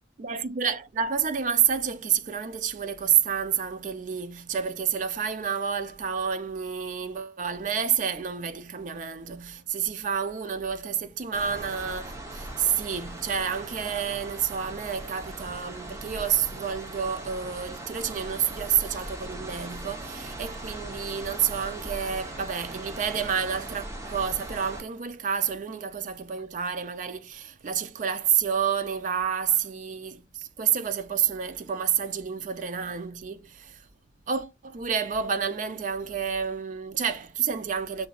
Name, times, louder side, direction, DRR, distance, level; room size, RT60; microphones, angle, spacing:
voice 1, 0.2-33.8 34.3-38.1, right 8 dB, 45° right, 0.4 m, -29 dB
sound 1, 11.3-24.8, right 1 dB, 15° right, 0.7 m, -39 dB
6.7 x 2.6 x 2.3 m
head